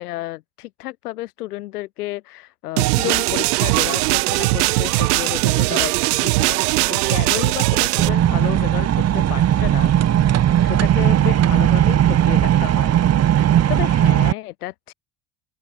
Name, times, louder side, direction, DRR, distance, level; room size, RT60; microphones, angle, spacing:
voice 1, 0.0-13.0 13.3-14.9, left 17 dB, 90° left, 6.9 m, -32 dB
sound 1, 2.8-8.1, right 24 dB, 85° right, 0.7 m, -19 dB
sound 2, 8.0-14.3, right 11 dB, 35° right, 1.1 m, -17 dB
open air
supercardioid pair, 90°, 44 cm